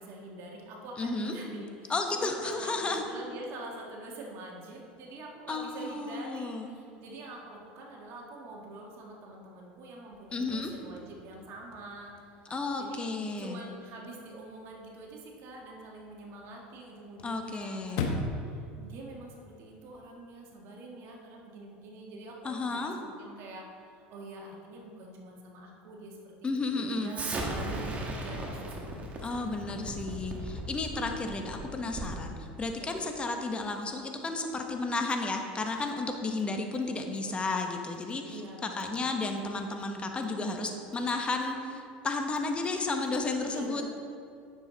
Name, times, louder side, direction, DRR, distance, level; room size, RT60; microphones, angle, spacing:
voice 1, 0.0-12.4 12.8-29.0 29.3-29.8 32.8-33.1 38.2-39.1 43.4-43.8, right 2 dB, 55° right, -1 dB, 1.7 m, -45 dB
voice 2, 1.0-1.3 1.9-3.0 5.5-6.7 10.3-10.7 12.5-13.6 17.2-18.0 22.4-22.9 26.4-27.2 29.2-43.8, left 3 dB, 20° left, 4 dB, 1.1 m, -33 dB
Chirp tweet / Car / Slam, 10.1-20.1, left 3 dB, 65° left, 1.1 m, -42 dB
Explosion, 27.1-32.3, right 1 dB, 30° right, 1.5 m, -37 dB
9.4 x 6.7 x 4.0 m, 2.5 s
supercardioid pair, 100°, 5 cm